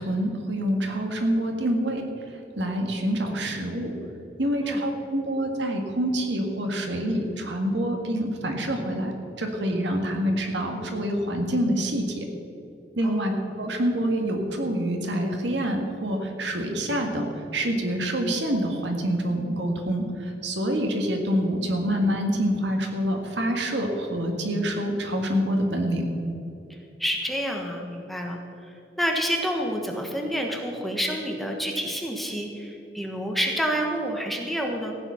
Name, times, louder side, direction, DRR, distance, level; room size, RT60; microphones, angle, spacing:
voice 1, 0.0-2.0 2.6-3.9 4.4-12.2 13.0-13.3 13.6-17.3 17.5-26.0, equal, 80° right, 3 dB, 1.9 m, -26 dB
voice 2, 13.0-13.5 27.0-28.4 29.0-35.0, equal, ahead, 1 dB, 1.3 m, -28 dB
15.0 x 9.3 x 5.7 m, 2.9 s
head